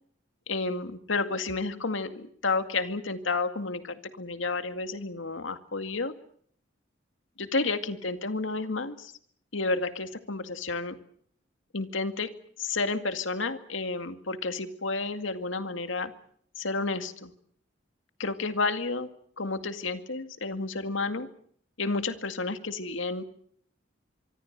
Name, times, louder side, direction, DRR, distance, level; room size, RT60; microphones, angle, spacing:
voice 1, 0.5-6.1 7.4-9.1 9.5-11.0 11.7-16.1 16.6-17.3 18.2-19.1 19.4-21.3 21.8-23.2, left 3 dB, 90° left, 9 dB, 2.1 m, -31 dB
25.5 x 23.5 x 6.7 m, 0.62 s
head